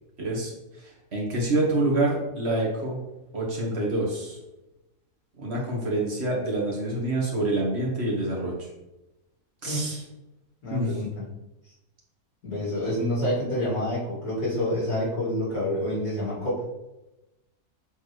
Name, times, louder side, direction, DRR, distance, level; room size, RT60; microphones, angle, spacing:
voice 1, 0.2-3.0 3.3-4.4 5.4-8.7 9.6-10.0 10.7-11.0, right 2 dB, 40° right, -3 dB, 1.8 m, -27 dB
voice 2, 10.6-11.1 12.4-16.6, left 1 dB, 75° left, -7 dB, 2.7 m, -27 dB
7.6 x 4.4 x 3.2 m, 0.96 s
omnidirectional pair, 1.7 m